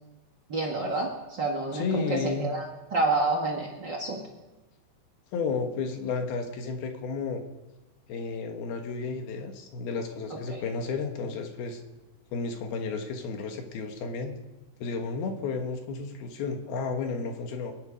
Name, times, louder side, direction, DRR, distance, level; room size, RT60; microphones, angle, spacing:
voice 1, 0.5-4.2 10.3-10.6, right 2 dB, 45° right, 1 dB, 1.4 m, -29 dB
voice 2, 1.7-2.5 5.3-7.4 8.1-11.8 12.3-14.4 14.8-17.7, left 4 dB, 70° left, 5 dB, 3.2 m, -32 dB
23.5 x 10.5 x 5.3 m, 1.1 s
omnidirectional pair, 4.8 m